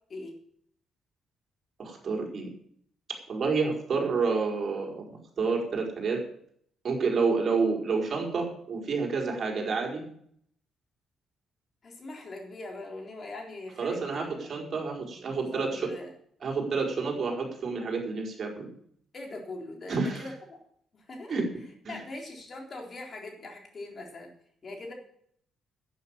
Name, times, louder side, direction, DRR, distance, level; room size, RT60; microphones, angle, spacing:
voice 1, 1.8-2.5 3.1-6.2 6.8-10.1 13.8-15.9 16.4-18.7 19.9-20.3 21.3-21.5 21.8-22.0, right 4 dB, 50° right, 0 dB, 4.8 m, -29 dB
voice 2, 11.8-14.5 15.3-16.1 19.1-20.6 20.9-21.3 21.9-24.3 24.6-24.9, left 2 dB, 45° left, 1 dB, 4.0 m, -41 dB
11.0 x 9.4 x 7.4 m, 0.65 s
cardioid pair, 90°, 0 cm